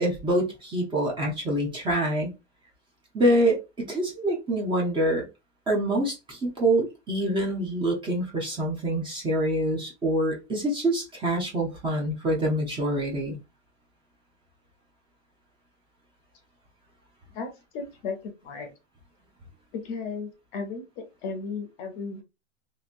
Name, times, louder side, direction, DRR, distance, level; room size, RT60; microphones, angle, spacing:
voice 1, 0.0-2.3 3.1-5.2 5.7-13.4, right 1 dB, 15° right, -2 dB, 0.8 m, -26 dB
voice 2, 17.3-18.7 19.7-22.2, left 4 dB, 35° left, 5 dB, 0.8 m, -35 dB
3.0 x 2.8 x 2.6 m, 0.25 s
supercardioid pair, 150°, 36 cm